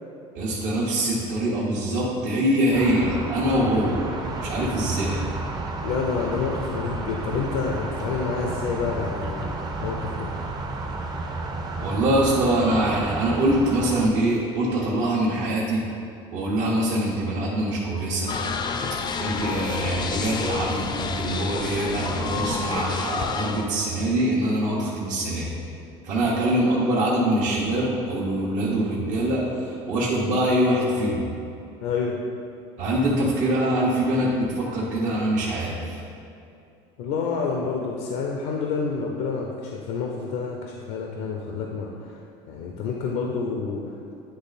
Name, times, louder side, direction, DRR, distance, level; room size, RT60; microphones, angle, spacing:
voice 1, 0.3-4.1 4.4-5.2 11.8-15.8 16.3-18.3 19.2-25.5 26.0-31.2 32.8-36.0, right 1 dB, 60° right, -6 dB, 1.1 m, -24 dB
sound 1, 2.7-14.1, right 2 dB, 30° right, 0.7 m, -32 dB
voice 2, 5.8-9.5 9.8-10.3 31.8-32.2 37.0-44.0, left 5 dB, 75° left, 0 dB, 0.6 m, -28 dB
sound 2, 18.3-23.7, left 5 dB, 30° left, 0.5 m, -29 dB
9.5 x 3.2 x 4.1 m, 2.6 s
supercardioid pair, 110°, 14 cm